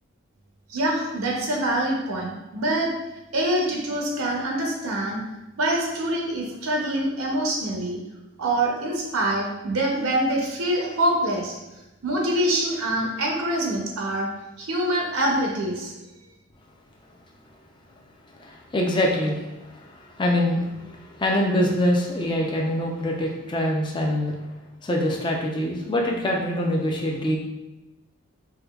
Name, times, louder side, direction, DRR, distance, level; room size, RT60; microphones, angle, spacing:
voice 1, 0.7-2.9 3.3-5.2 5.6-8.0 8.4-11.6 12.0-14.3 14.6-15.9, right 1 dB, 90° right, -1 dB, 0.6 m, -25 dB
voice 2, 18.4-24.3 24.8-27.4, left 1 dB, 20° left, -1 dB, 0.4 m, -24 dB
4.8 x 2.2 x 2.3 m, 1.0 s
head